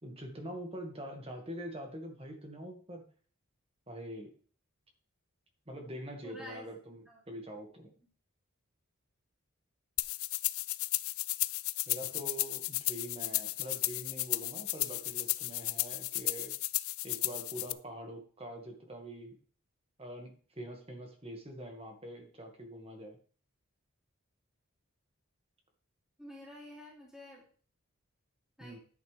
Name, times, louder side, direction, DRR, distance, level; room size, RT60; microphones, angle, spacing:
voice 1, 0.0-3.0 3.9-4.3 5.7-7.9 11.9-16.6 17.0-19.4 20.0-23.2 28.6-28.8, equal, 25° right, 3 dB, 1.9 m, -44 dB
voice 2, 6.2-6.7 7.1-7.2 26.2-27.4 28.6-28.8, equal, 5° right, -3 dB, 2.8 m, -49 dB
sound 1, 10.0-17.7, left 19 dB, 75° left, 0.4 m, -34 dB
10.5 x 9.1 x 3.4 m, 0.43 s
head